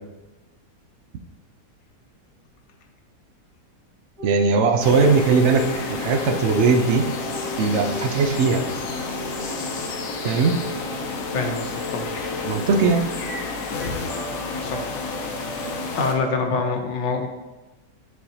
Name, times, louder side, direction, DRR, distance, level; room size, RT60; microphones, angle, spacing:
sound 1, 4.2-16.7, right 1 dB, 50° right, 2.2 m, -36 dB
voice 1, 4.2-7.1 7.6-8.6 10.2-10.5 12.4-13.0, right 4 dB, 85° right, 5 dB, 0.6 m, -19 dB
sound 2, 4.8-16.1, left 4 dB, 60° left, 1.1 m, -31 dB
voice 2, 11.3-12.1 14.6-14.8 15.9-17.3, left 4 dB, 80° left, 4 dB, 1.5 m, -25 dB
9.8 x 4.3 x 2.8 m, 1.1 s
omnidirectional pair, 1.9 m